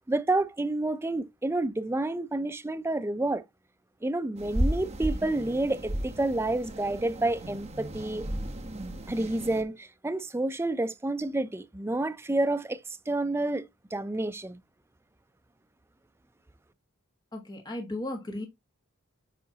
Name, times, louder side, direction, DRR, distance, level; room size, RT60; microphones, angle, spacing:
voice 1, 0.1-3.4 4.0-8.3 9.1-14.6, right 2 dB, 10° right, 0.4 m, -29 dB
sound 1, 4.4-9.6, right 1 dB, 30° right, 1.0 m, -34 dB
voice 2, 17.3-18.5, left 1 dB, 20° left, 1.2 m, -35 dB
7.3 x 4.8 x 2.8 m
head